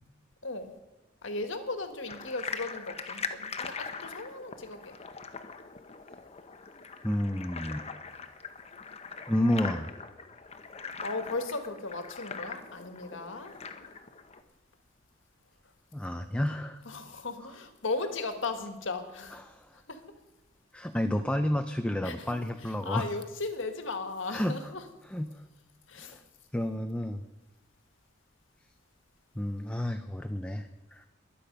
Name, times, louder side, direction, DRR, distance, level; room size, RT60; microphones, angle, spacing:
voice 1, 0.4-0.7 1.2-5.0 11.0-13.5 16.8-19.4 19.9-20.0 22.0-22.4 22.6-24.8 25.9-26.2, left 3 dB, 70° left, 1.6 m, -36 dB
sound 1, 2.1-14.4, left 5 dB, 30° left, 0.9 m, -42 dB
voice 2, 7.0-7.9 9.3-9.9 15.9-16.8 19.3-19.7 20.7-23.1 24.3-24.7 25.1-25.4 26.0-26.2 26.5-27.2 29.4-31.1, left 1 dB, 5° left, 0.5 m, -31 dB
22.0 x 8.6 x 5.4 m
head